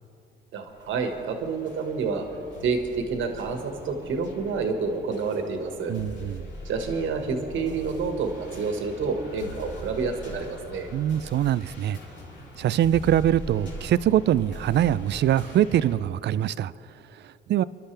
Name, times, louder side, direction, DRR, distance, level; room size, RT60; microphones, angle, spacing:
voice 1, 0.5-2.3 2.6-5.9 6.7-10.9, right 4 dB, 80° right, 1.7 m, -28 dB
sound 1, 0.7-16.0, left 1 dB, 70° left, 3.1 m, -42 dB
voice 2, 5.9-6.5 10.9-12.0 12.6-16.7 17.2-17.6, right 11 dB, 60° right, 0.4 m, -23 dB
29.5 x 12.0 x 3.4 m
cardioid pair, 90°, 20 cm